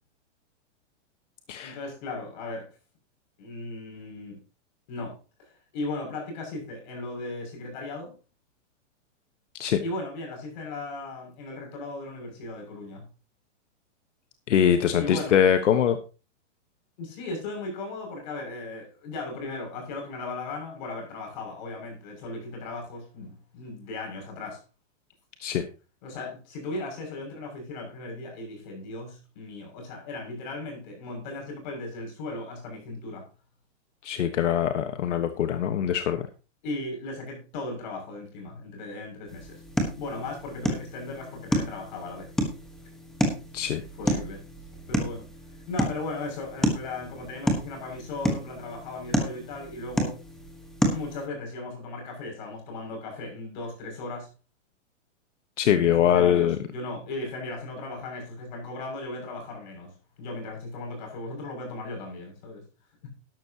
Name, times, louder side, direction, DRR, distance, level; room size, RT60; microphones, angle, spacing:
voice 1, 1.6-2.7 3.4-4.4 4.9-8.1 9.8-13.0 15.0-15.4 17.0-24.6 26.0-33.2 36.6-39.6 40.0-42.3 44.0-44.4 44.9-45.3 45.7-50.2 50.9-54.3 55.7-62.6, left 2 dB, 40° left, 1 dB, 6.5 m, -37 dB
voice 2, 14.5-16.0 25.4-25.6 34.0-36.2 43.5-43.8 55.6-56.6, left 9 dB, 75° left, 8 dB, 1.3 m, -23 dB
sound 1, 39.3-51.3, equal, ahead, 1.2 m, -30 dB
12.5 x 11.5 x 2.9 m, 0.33 s
supercardioid pair, 175°, 36 cm